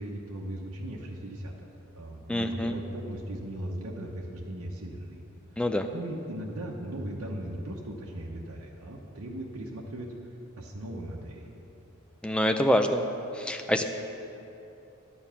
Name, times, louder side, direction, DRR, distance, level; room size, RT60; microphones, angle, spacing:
voice 1, 0.0-1.5 1.9-5.2 5.5-5.7 5.9-10.1 10.6-11.5, right 1 dB, 85° right, -1 dB, 1.0 m, -38 dB
voice 2, 2.3-2.7 5.6-5.9 12.2-13.0 13.3-13.8, equal, 5° left, 6 dB, 0.4 m, -25 dB
11.0 x 7.1 x 5.7 m, 2.9 s
head